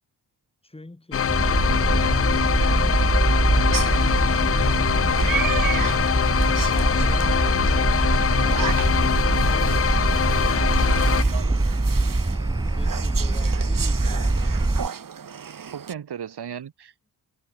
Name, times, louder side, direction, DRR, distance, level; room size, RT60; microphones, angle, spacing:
sound 1, 1.1-11.2, left 8 dB, 35° left, 0.6 m, -23 dB
sound 2, 1.3-14.9, right 2 dB, 10° right, 0.8 m, -23 dB
sound 3, 3.7-15.9, right 7 dB, 55° right, 2.5 m, -34 dB
voice 1, 12.8-14.5, left 2 dB, 15° left, 3.4 m, -46 dB
voice 2, 15.7-17.1, right 8 dB, 85° right, 4.8 m, -36 dB
wide cardioid pair, 145°, 39 cm